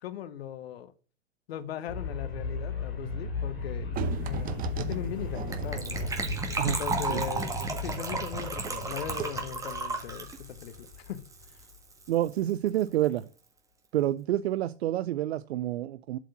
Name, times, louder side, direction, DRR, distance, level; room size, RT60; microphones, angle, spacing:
voice 1, 0.0-0.9 1.5-11.6, left 10 dB, 65° left, 1.0 m, -39 dB
sound 1, 1.9-11.8, left 3 dB, 30° left, 2.5 m, -36 dB
sound 2, 3.9-8.8 9.1-9.2, right 8 dB, 25° right, 0.9 m, -38 dB
Gurgling / Trickle dribble / Fill (with liquid), 5.5-11.8 12.0-12.1 12.3-12.5 12.8-12.9, right 3 dB, 10° right, 1.5 m, -34 dB
voice 2, 12.1-13.3 13.9-16.2, right 13 dB, 65° right, 0.5 m, -28 dB
7.8 x 4.7 x 5.5 m
hypercardioid pair, 120°, 34 cm